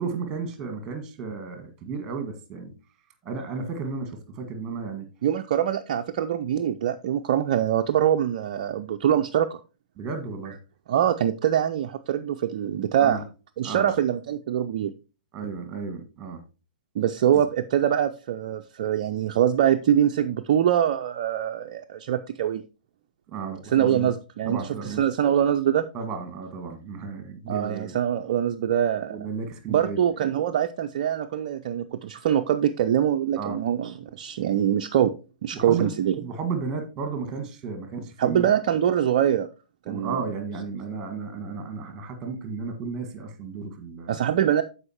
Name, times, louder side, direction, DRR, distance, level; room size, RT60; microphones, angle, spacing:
voice 1, 0.0-2.7 3.2-5.1 10.0-10.6 13.0-13.2 13.6-14.0 15.3-16.4 17.3-17.5 23.3-24.1 24.5-25.2 25.9-28.0 29.1-30.2 33.4-33.6 35.5-38.5 39.8-44.2, right 4 dB, 15° right, 7 dB, 1.7 m, -33 dB
voice 2, 5.2-9.6 10.9-13.2 13.6-14.9 17.0-22.6 23.7-24.6 24.8-25.9 27.5-29.2 29.7-35.1 35.4-36.1 38.2-39.5 39.9-40.2 44.1-44.6, right 10 dB, 40° right, 6 dB, 0.4 m, -24 dB
14.0 x 4.8 x 2.9 m, 0.33 s
figure-of-eight pair, 115°, 5 cm